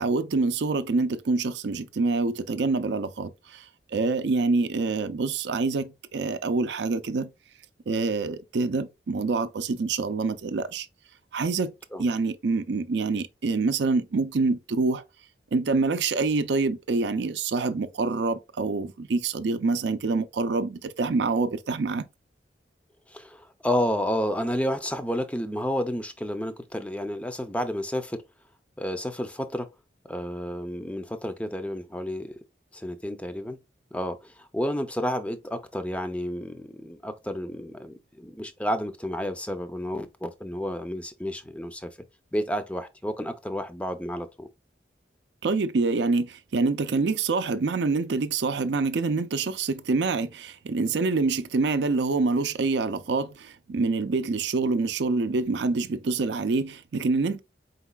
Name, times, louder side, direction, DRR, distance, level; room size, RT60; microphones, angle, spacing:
voice 1, 0.0-7.3 7.9-10.9 11.3-11.7 12.0-15.0 15.5-22.1 45.4-57.4, right 3 dB, 80° right, 0.5 m, -26 dB
voice 2, 23.1-28.2 28.8-29.7 30.0-32.4 32.7-33.6 33.9-42.0 42.3-44.5, equal, 5° left, 0.5 m, -31 dB
4.4 x 4.0 x 2.3 m
head